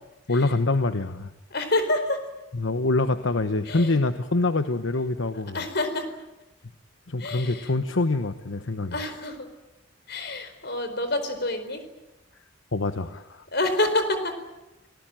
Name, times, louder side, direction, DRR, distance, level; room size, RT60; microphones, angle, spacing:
voice 1, 0.3-1.3 2.5-5.6 7.1-9.0 12.7-13.4, left 2 dB, 80° left, 9 dB, 1.1 m, -25 dB
voice 2, 1.5-2.2 3.7-4.0 5.3-6.1 7.2-7.7 8.9-9.5 10.1-11.8 13.5-14.4, left 2 dB, 55° left, 9 dB, 4.5 m, -28 dB
30.0 x 19.0 x 9.1 m, 1.0 s
head